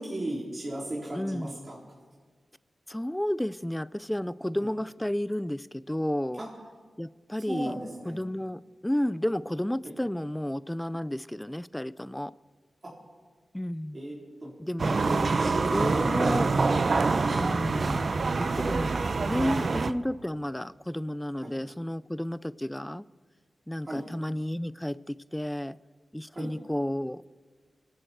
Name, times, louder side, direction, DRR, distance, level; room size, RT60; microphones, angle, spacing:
voice 1, 0.0-1.8 4.6-4.7 6.4-6.5 7.5-8.2 13.9-14.1 14.4-14.5 15.3-16.1 17.2-17.4 21.4-21.5 23.8-24.0 26.3-26.5, right 1 dB, 40° right, -6 dB, 4.2 m, -36 dB
voice 2, 1.1-1.6 2.9-6.4 7.0-7.7 8.1-12.3 13.5-14.0 14.6-15.3 15.7-16.5 17.3-18.1 18.4-23.1 23.7-25.8 26.1-27.2, left 1 dB, 10° left, 18 dB, 0.4 m, -32 dB
sound 1, 14.8-19.9, right 4 dB, 60° right, 0.7 m, -26 dB
26.5 x 11.0 x 4.6 m, 1.5 s
cardioid pair, 55°, 0 cm